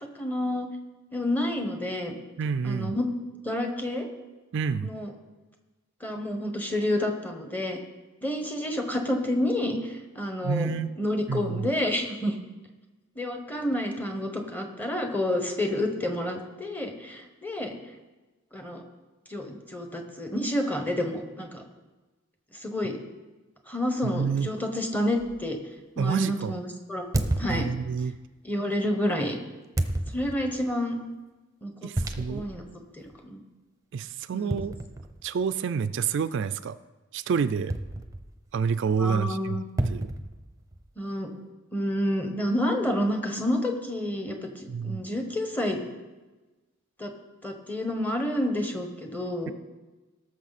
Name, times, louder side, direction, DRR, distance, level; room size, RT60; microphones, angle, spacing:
voice 1, 0.1-0.7 1.1-2.1 2.6-3.1 3.4-4.1 4.8-5.1 6.0-7.8 8.2-10.7 11.0-12.3 13.1-17.7 18.5-18.8 19.3-21.6 22.6-23.0 23.7-25.6 25.9-27.7 28.4-29.4 30.1-31.0 31.6-31.7 32.3-32.6 33.2-33.4 34.3-34.6 39.0-39.6 41.0-41.3 41.7-45.8 47.0-47.1 47.4-49.5, left 1 dB, 10° left, 4 dB, 1.3 m, -29 dB
voice 2, 2.4-3.0 4.5-4.9 10.4-10.9 11.3-11.7 24.0-24.5 26.0-26.6 27.5-28.2 31.8-32.5 33.9-34.7 35.2-36.8 37.1-37.7 38.5-40.1 44.7-45.0, right 6 dB, 60° right, 13 dB, 0.3 m, -28 dB
sound 1, 25.2-25.4 27.1-28.2 29.8-30.6 32.0-32.6 33.0-33.1 34.5-35.4 37.7-38.5 39.8-40.9, right 1 dB, 15° right, 0.7 m, -31 dB
18.5 x 6.5 x 4.2 m, 1.2 s
head